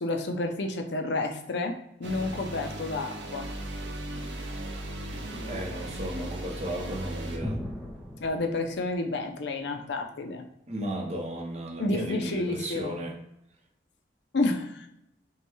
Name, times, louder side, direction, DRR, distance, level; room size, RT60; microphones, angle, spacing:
voice 1, 0.0-3.5 8.2-10.4 11.8-12.9 14.3-14.9, left 2 dB, 75° left, 5 dB, 0.5 m, -30 dB
sound 1, 2.0-7.4, right 1 dB, 80° right, 0.7 m, -37 dB
sound 2, 5.3-9.4, equal, 5° right, 0.5 m, -41 dB
voice 2, 5.5-7.6 10.7-13.2, right 1 dB, 35° right, 1 dB, 0.8 m, -34 dB
5.6 x 2.2 x 3.0 m, 0.82 s
head